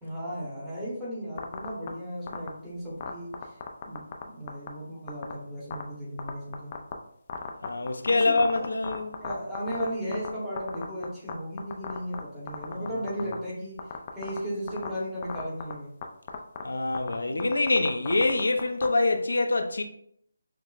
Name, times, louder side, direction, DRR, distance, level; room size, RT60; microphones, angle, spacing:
voice 1, 0.0-3.6 3.8-6.7 8.1-8.7 9.2-16.0, equal, 5° right, 0.9 m, -35 dB
sound 1, 1.4-1.9 2.3-2.5 3.0-4.2 4.5-4.7 5.1-5.3 5.7-5.8 6.2-6.9 7.3-10.3 10.6-11.3 11.6-12.2 12.5-13.3 13.8-14.4 14.7-14.9 15.2-15.7 16.0-16.1 16.3-16.6 16.9-18.9, left 8 dB, 25° left, 0.3 m, -34 dB
voice 2, 7.6-9.1 16.6-19.8, left 2 dB, 90° left, 0.5 m, -25 dB
5.9 x 2.0 x 2.4 m
hypercardioid pair, 170°, 0 cm